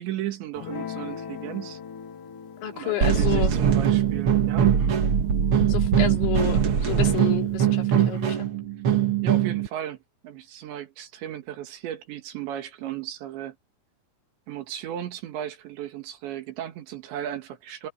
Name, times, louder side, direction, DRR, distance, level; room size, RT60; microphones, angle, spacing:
voice 1, 0.0-1.8 2.7-4.7 9.2-10.0 10.2-13.6 14.5-17.9, right 11 dB, 80° right, 4.4 m, -35 dB
Guitar, 0.5-7.1, left 7 dB, 50° left, 3.5 m, -42 dB
voice 2, 2.6-3.5 5.7-8.5, left 12 dB, 90° left, 5.0 m, -31 dB
sound 1, 3.0-9.7, right 8 dB, 55° right, 1.5 m, -21 dB
omnidirectional pair, 5.0 m